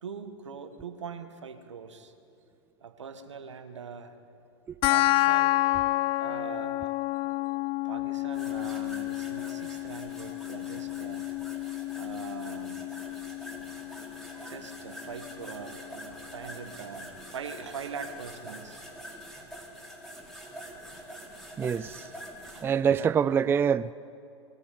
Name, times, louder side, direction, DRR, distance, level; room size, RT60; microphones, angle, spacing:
voice 1, 0.0-2.1 2.8-4.1 4.9-5.7 6.2-6.9 7.8-11.3 11.9-12.9 14.3-18.8 22.4-22.7 23.0-23.4, right 6 dB, 85° right, 1.6 m, -42 dB
sound 1, 4.8-15.8, left 18 dB, 40° left, 0.5 m, -30 dB
sound 2, 8.3-22.6, equal, ahead, 4.3 m, -45 dB
voice 2, 21.6-22.0 22.6-23.9, right 7 dB, 15° right, 0.4 m, -25 dB
22.0 x 13.0 x 9.6 m
hypercardioid pair, 105°, 15 cm